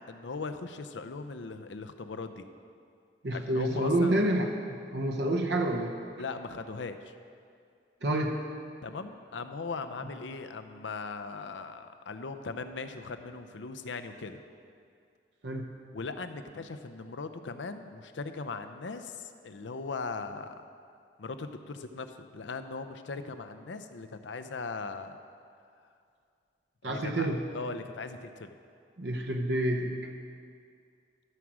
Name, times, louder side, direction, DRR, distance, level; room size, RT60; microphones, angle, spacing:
voice 1, 0.0-2.4 3.3-4.1 6.2-7.1 8.8-14.4 15.9-20.5 21.2-25.2 26.8-28.6, left 4 dB, 85° left, 9 dB, 0.6 m, -39 dB
voice 2, 3.2-5.9 8.0-8.4 15.4-15.8 26.8-27.5 29.0-30.1, right 1 dB, 65° right, 2 dB, 0.9 m, -28 dB
13.0 x 6.1 x 6.3 m, 2.3 s
head